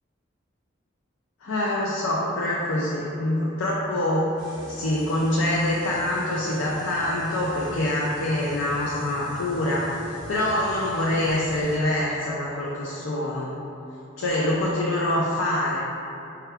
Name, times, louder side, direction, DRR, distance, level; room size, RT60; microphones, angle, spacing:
voice 1, 1.4-4.3 4.7-9.9 10.3-13.5 14.2-15.8, left 1 dB, 85° left, -5 dB, 0.5 m, -25 dB
sound 1, 4.4-11.8, equal, 5° left, 1.1 m, -43 dB
4.5 x 2.3 x 3.4 m, 2.9 s
head